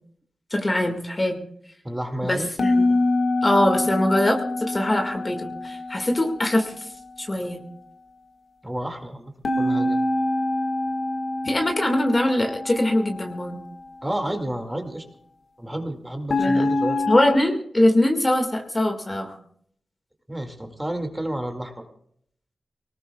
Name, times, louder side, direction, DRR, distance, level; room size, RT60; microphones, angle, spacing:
voice 1, 0.5-1.4 2.2-2.8 3.4-6.7 7.2-7.6 11.4-13.6 16.4-16.6 17.1-19.4, left 1 dB, 30° left, 4 dB, 1.9 m, -22 dB
voice 2, 1.8-2.5 8.6-10.0 14.0-15.0 15.6-17.0 20.3-21.9, right 1 dB, 10° right, 4 dB, 2.1 m, -30 dB
sound 1, 2.6-6.7 9.4-13.6 16.3-17.4, left 2 dB, 65° left, 1.7 m, -25 dB
23.5 x 19.0 x 2.3 m, 0.64 s
cardioid pair, 70°, 0 cm